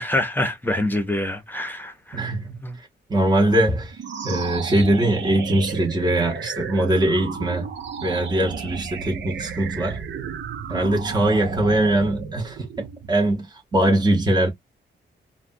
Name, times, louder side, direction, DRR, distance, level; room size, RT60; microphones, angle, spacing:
voice 1, 0.0-2.2 2.6-2.8, left 1 dB, 10° left, 0.8 m, -25 dB
voice 2, 2.1-7.7 8.0-10.0 10.7-14.5, right 1 dB, 20° right, 0.9 m, -22 dB
sound 1, 3.9-13.5, right 7 dB, 80° right, 0.7 m, -33 dB
3.2 x 2.3 x 2.6 m
wide cardioid pair, 120°, 18 cm